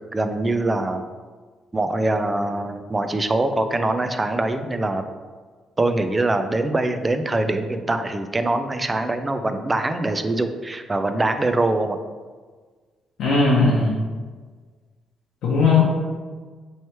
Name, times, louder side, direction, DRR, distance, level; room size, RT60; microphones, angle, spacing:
voice 1, 0.1-1.0 1.7-5.0 5.8-12.0, right 2 dB, 20° right, 8 dB, 0.3 m, -23 dB
voice 2, 13.2-13.9 15.4-15.8, left 4 dB, 75° left, -6 dB, 0.8 m, -17 dB
3.1 x 3.0 x 4.3 m, 1.5 s
cardioid pair, 90°, 0 cm